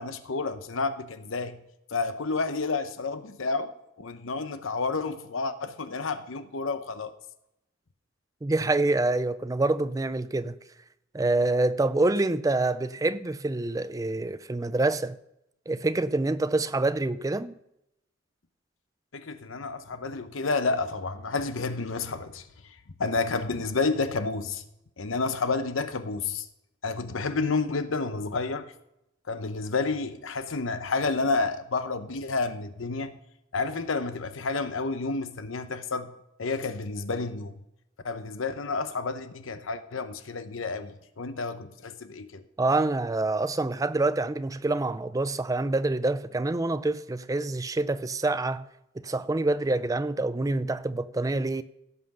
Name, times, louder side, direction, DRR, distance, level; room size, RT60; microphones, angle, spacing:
voice 1, 0.0-1.6 1.9-3.7 4.0-7.1 19.1-24.6 25.0-26.5 26.8-28.7 29.3-33.2 33.5-36.1 36.4-37.6 38.0-42.5, left 3 dB, 85° left, 0.9 m, -30 dB
voice 2, 8.4-10.6 11.1-15.2 15.7-17.5 42.6-48.7 49.0-51.6, right 2 dB, 15° right, 0.4 m, -26 dB
16.5 x 5.8 x 5.5 m
head